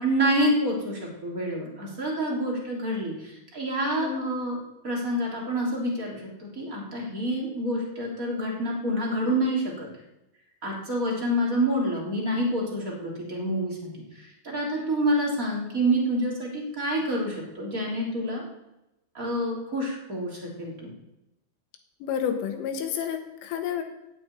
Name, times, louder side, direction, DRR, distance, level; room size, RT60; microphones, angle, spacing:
voice 1, 0.0-4.6 4.8-9.9 10.6-13.9 14.4-18.4 19.1-20.9, right 1 dB, 25° right, -3 dB, 2.3 m, -27 dB
voice 2, 3.8-4.3 22.0-23.8, left 8 dB, 90° left, 6 dB, 3.9 m, -30 dB
9.1 x 8.8 x 8.9 m, 0.92 s
omnidirectional pair, 5.5 m